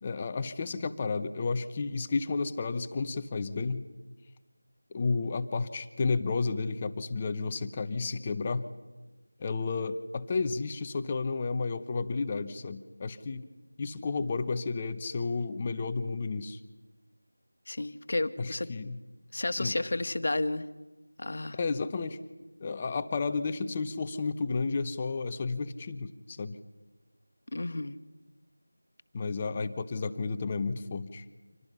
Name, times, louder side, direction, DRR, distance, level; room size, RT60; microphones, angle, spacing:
voice 1, 0.0-3.8 4.9-8.6 9.4-13.4 13.8-16.6 18.4-19.0 19.6-19.8 21.5-22.2 22.6-26.6 29.1-31.3, left 4 dB, 20° left, 10 dB, 1.0 m, -32 dB
voice 2, 17.7-18.7 19.3-20.7 21.2-21.6 27.5-28.0, left 2 dB, 45° left, 10 dB, 1.5 m, -31 dB
30.0 x 26.5 x 5.7 m, 1.2 s
figure-of-eight pair, 170°, 0 cm